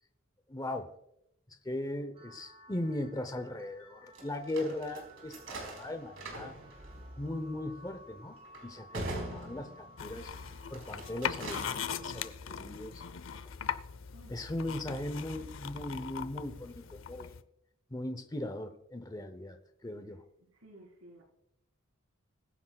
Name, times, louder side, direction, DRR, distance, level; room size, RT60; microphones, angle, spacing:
voice 1, 0.5-0.9 1.6-6.5 7.2-8.4 8.6-13.0 14.3-17.4 17.9-19.6 19.8-20.2, left 1 dB, 20° left, 0.7 m, -38 dB
sound 1, 2.1-12.3, equal, 30° right, 2.6 m, -56 dB
sound 2, 4.2-10.2 10.6-11.9, right 2 dB, 65° right, 4.2 m, -44 dB
sound 3, 10.0-17.4, left 7 dB, 65° left, 0.6 m, -40 dB
voice 2, 14.1-14.7 20.4-21.2, right 1 dB, 85° right, 4.2 m, -55 dB
23.0 x 10.0 x 2.3 m
head